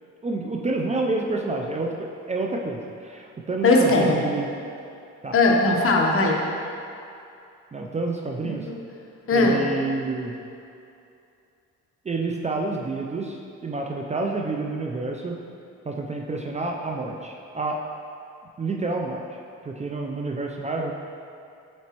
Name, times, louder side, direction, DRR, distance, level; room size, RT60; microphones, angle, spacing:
voice 1, 0.2-4.5 5.2-5.3 7.7-8.7 9.3-10.4 12.0-15.4 15.9-17.8 18.6-20.9, right 3 dB, 25° right, 0 dB, 0.4 m, -29 dB
voice 2, 3.6-4.2 5.3-6.4 8.4-8.5 9.3-9.6, left 2 dB, 45° left, 0 dB, 0.9 m, -18 dB
7.6 x 4.1 x 3.0 m, 2.6 s
cardioid pair, 90°, 30 cm